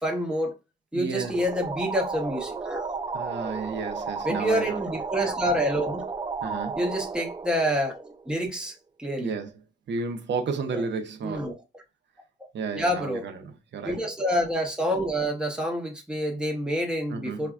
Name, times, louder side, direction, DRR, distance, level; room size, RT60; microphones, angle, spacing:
voice 1, 0.0-0.5 0.9-2.9 4.2-6.1 6.8-9.3 10.7-10.8 11.2-11.5 12.7-13.3 13.8-17.5, equal, 5° right, 0.8 m, -28 dB
voice 2, 0.9-1.4 3.1-4.8 6.4-6.8 9.2-9.5 9.9-11.5 12.5-14.0 17.1-17.5, right 5 dB, 90° right, 0.6 m, -32 dB
sound 1, 1.2-8.6, right 4 dB, 25° right, 0.3 m, -33 dB
4.9 x 2.2 x 2.4 m
wide cardioid pair, 115°, 18 cm